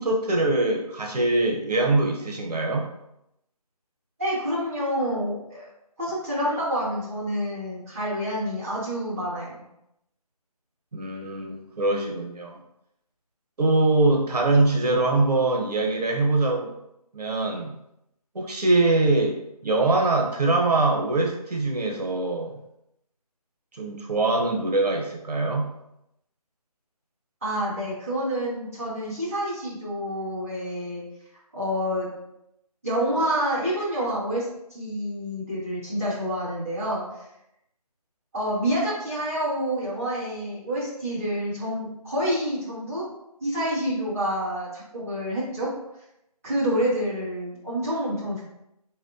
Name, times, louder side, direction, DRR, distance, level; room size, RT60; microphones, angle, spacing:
voice 1, 0.0-2.9 10.9-12.6 13.6-16.7 17.1-17.7 18.3-19.4 19.6-22.6 23.7-25.7, right 2 dB, 90° right, 0 dB, 0.9 m, -23 dB
voice 2, 4.2-5.7 6.0-9.7 27.4-31.0 31.5-32.1 32.8-37.2 38.3-43.1 43.4-45.7 46.4-48.4, equal, 20° right, -11 dB, 1.7 m, -28 dB
4.2 x 4.1 x 2.7 m, 0.82 s
figure-of-eight pair, 175°, 20 cm